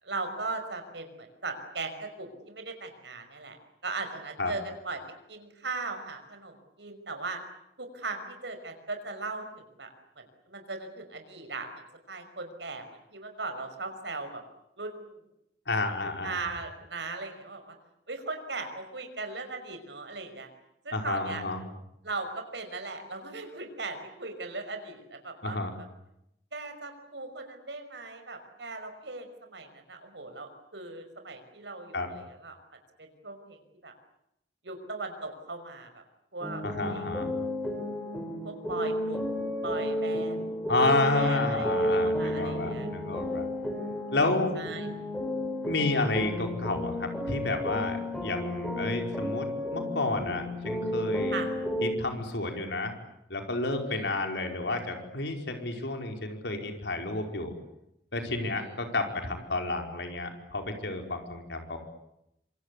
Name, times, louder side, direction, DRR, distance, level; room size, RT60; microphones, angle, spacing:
voice 1, 0.0-3.6 3.8-5.0 5.3-7.4 7.8-9.9 10.2-12.9 13.1-14.4 14.8-15.2 16.2-17.8 18.1-20.5 20.8-21.4 22.0-25.6 26.5-32.6 33.0-33.9 34.6-36.0 36.3-36.6 36.9-37.1 38.4-39.2 39.6-40.4 40.8-42.9 44.6-44.9 51.3-51.5 53.9-54.1 58.6-58.7, right 3 dB, 85° right, 7 dB, 5.6 m, -38 dB
voice 2, 15.7-16.4 20.9-21.6 25.4-25.7 31.9-32.1 36.6-37.3 40.7-43.4 44.1-44.6 45.6-51.4 51.8-52.9 53.3-57.5 58.1-61.8, left 2 dB, 80° left, 4 dB, 5.0 m, -30 dB
sound 1, 36.4-51.9, left 1 dB, 5° left, 5.7 m, -32 dB
26.5 x 26.5 x 8.4 m, 0.81 s
head